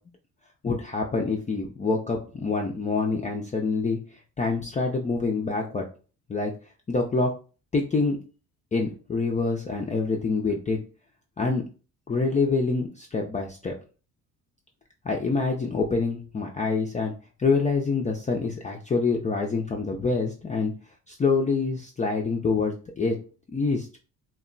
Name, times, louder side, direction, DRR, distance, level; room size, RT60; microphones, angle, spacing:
voice 1, 0.6-4.0 4.4-5.9 6.3-6.5 6.9-7.3 7.7-8.2 8.7-10.8 11.4-11.6 12.1-13.8 15.0-17.1 17.4-20.7 21.1-23.2 23.5-23.9, left 4 dB, 20° left, 0 dB, 0.4 m, -26 dB
2.2 x 2.0 x 3.8 m, 0.36 s
cardioid pair, 75°, 36 cm